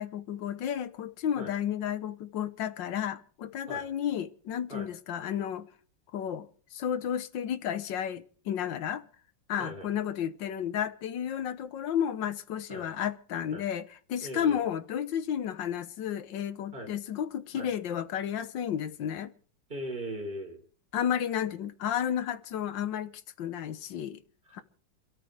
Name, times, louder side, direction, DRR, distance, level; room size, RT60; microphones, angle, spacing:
voice 1, 0.0-5.7 6.1-9.0 9.5-19.3 20.9-23.1 23.4-24.2 24.5-24.6, left 9 dB, 85° left, 1.7 m, -32 dB
voice 2, 9.6-9.9 12.7-12.9 13.5-13.7 14.2-14.6 16.7-16.9 17.5-17.7 19.7-20.6, right 1 dB, 30° right, 3.7 m, -39 dB
27.0 x 13.5 x 3.4 m
omnidirectional pair, 1.9 m